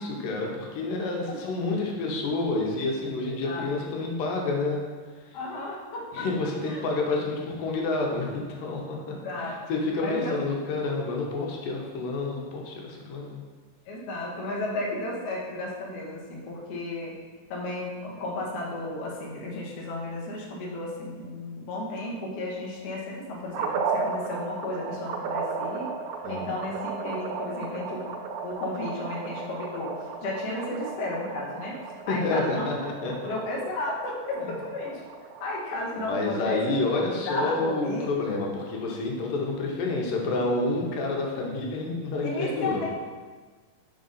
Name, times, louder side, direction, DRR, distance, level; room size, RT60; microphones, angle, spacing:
voice 1, 0.0-4.8 6.1-13.4 26.2-26.5 32.1-33.3 36.0-42.9, left 2 dB, 90° left, -1 dB, 2.6 m, -29 dB
voice 2, 3.3-3.6 5.3-6.3 6.6-6.8 9.1-9.5 10.0-10.4 13.9-17.2 17.5-25.9 26.3-28.1 28.4-32.7 33.2-35.0 35.4-36.7 37.0-38.2 42.2-42.9, left 2 dB, 65° left, -3 dB, 1.7 m, -33 dB
sound 1, 23.5-35.8, right 5 dB, 85° right, 2.3 m, -35 dB
6.4 x 3.8 x 5.4 m, 1.4 s
omnidirectional pair, 3.9 m